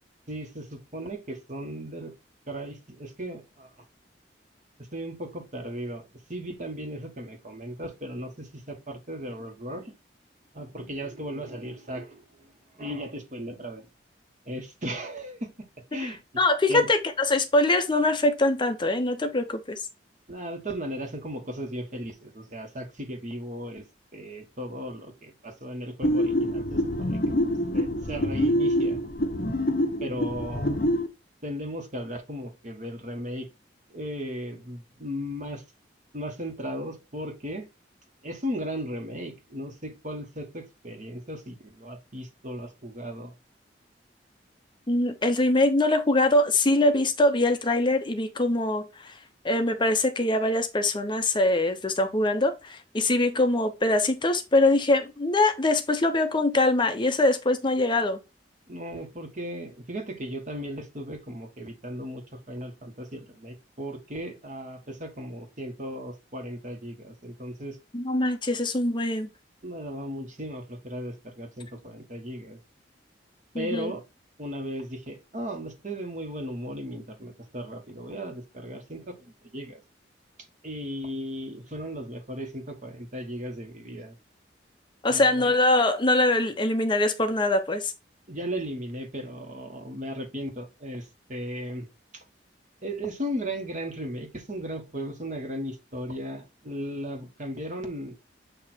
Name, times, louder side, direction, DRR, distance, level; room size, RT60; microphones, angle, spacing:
voice 1, 0.3-2.1 2.5-3.7 4.9-6.0 6.3-9.9 10.5-12.5 12.8-13.9 14.5-15.5 15.9-16.2 16.7-16.9 20.3-23.8 24.1-27.3 27.7-29.0 30.0-30.8 31.4-33.5 33.9-35.6 36.1-37.7 38.2-43.3 58.7-67.8 69.6-72.6 73.6-74.0 74.4-79.8 80.6-84.1 85.1-85.5 88.3-91.9 92.1-92.2 92.8-98.1, equal, 45° right, 1.6 m, -36 dB
voice 2, 16.4-19.8 44.9-49.1 49.4-58.2 67.9-69.3 73.5-73.9 85.0-87.9, left 2 dB, 25° left, 0.7 m, -23 dB
sound 1, 26.0-31.1, equal, 55° left, 0.9 m, -26 dB
8.0 x 2.9 x 4.4 m
head